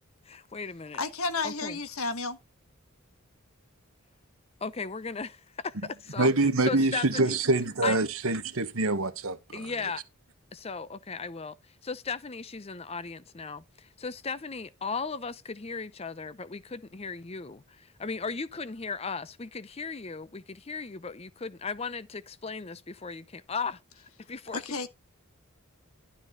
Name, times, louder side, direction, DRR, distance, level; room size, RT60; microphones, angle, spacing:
voice 1, 0.2-1.0 1.4-1.8 4.6-6.3 6.6-7.4 7.8-8.0 9.5-10.0 10.5-24.6, left 4 dB, 30° left, 0.6 m, -36 dB
voice 2, 1.0-2.4 24.5-24.9, left 3 dB, 85° left, 1.3 m, -32 dB
voice 3, 6.2-9.7, right 2 dB, 80° right, 1.2 m, -25 dB
12.0 x 4.3 x 5.4 m
head